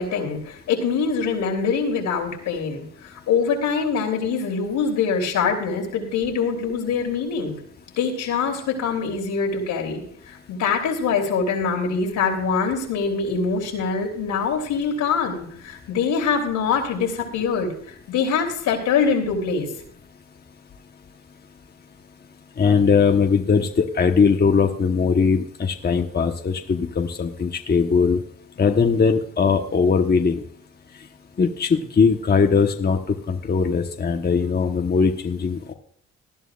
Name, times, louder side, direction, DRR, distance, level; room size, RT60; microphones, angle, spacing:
voice 1, 0.0-7.6 8.0-19.7, left 5 dB, 85° left, 2 dB, 3.2 m, -24 dB
voice 2, 22.6-28.2 28.6-30.4 31.4-33.0 33.3-35.7, left 5 dB, 35° left, 4 dB, 1.1 m, -20 dB
19.0 x 11.0 x 2.4 m, 0.65 s
cardioid pair, 90°, 30 cm